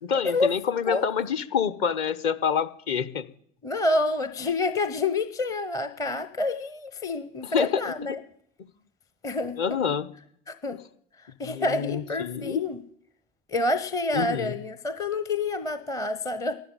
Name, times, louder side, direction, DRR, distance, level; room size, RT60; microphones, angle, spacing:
voice 1, 0.0-3.2 7.4-7.9 9.6-10.1 11.5-12.6 14.1-14.5, left 7 dB, 35° left, 14 dB, 0.9 m, -27 dB
voice 2, 3.6-8.2 9.2-9.6 10.5-10.8 11.4-12.8 13.5-16.5, left 2 dB, 10° left, 10 dB, 0.7 m, -28 dB
12.0 x 10.5 x 9.0 m, 0.67 s
figure-of-eight pair, 100°, 38 cm